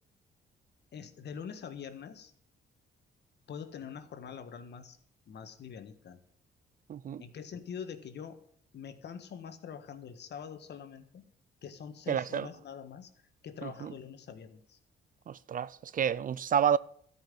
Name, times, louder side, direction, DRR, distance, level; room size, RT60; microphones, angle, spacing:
voice 1, 0.9-2.3 3.5-5.0 5.3-6.2 7.2-8.4 8.7-11.3 11.6-13.1 13.4-14.8, left 7 dB, 60° left, 1.5 m, -44 dB
voice 2, 6.9-7.2 12.1-12.5 13.6-13.9 15.3-16.8, right 8 dB, 45° right, 0.4 m, -30 dB
13.0 x 5.7 x 9.2 m
cardioid pair, 90°, 20 cm